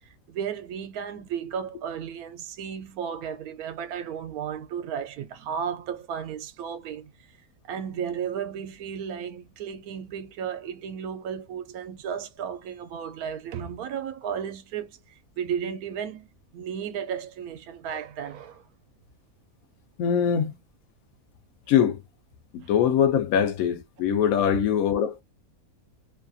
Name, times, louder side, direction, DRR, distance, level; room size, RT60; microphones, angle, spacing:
voice 1, 0.3-7.1 7.7-15.0 15.4-16.3 16.5-18.6, right 8 dB, 80° right, 1.1 m, -34 dB
voice 2, 20.0-20.5 21.7-22.0 22.5-25.2, left 8 dB, 75° left, 1.0 m, -22 dB
2.8 x 2.3 x 2.5 m
omnidirectional pair, 1.6 m